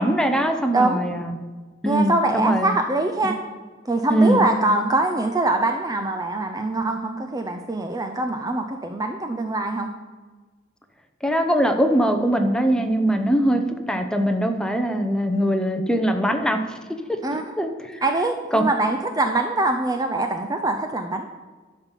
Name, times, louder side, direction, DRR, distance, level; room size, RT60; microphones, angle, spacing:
voice 1, 0.0-1.4 1.8-2.7 4.1-4.4 11.2-13.6 13.9-16.8 17.1-17.2 17.6-18.0 18.5-18.7, right 1 dB, 5° left, 6 dB, 0.9 m, -21 dB
voice 2, 0.7-1.0 1.9-3.4 3.9-9.9 17.2-17.5 18.0-21.2, right 2 dB, 20° right, 5 dB, 0.5 m, -23 dB
12.0 x 5.4 x 7.3 m, 1.4 s
head